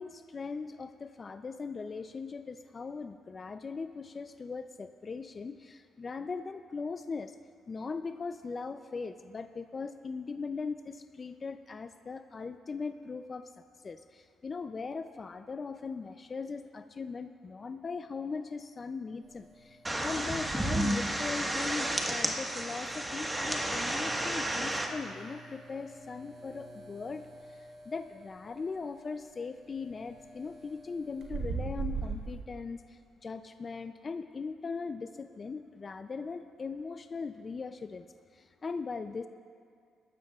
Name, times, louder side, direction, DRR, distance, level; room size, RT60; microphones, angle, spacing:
voice 1, 0.0-7.4 7.7-13.5 13.8-38.1 38.3-39.3, left 4 dB, 35° left, 9 dB, 0.4 m, -39 dB
sound 1, 19.2-32.4, right 5 dB, 70° right, 1.5 m, -44 dB
sound 2, 19.8-24.9, right 1 dB, 15° right, 1.4 m, -32 dB
21.0 x 12.5 x 2.4 m, 2.2 s
cardioid pair, 90°, 0 cm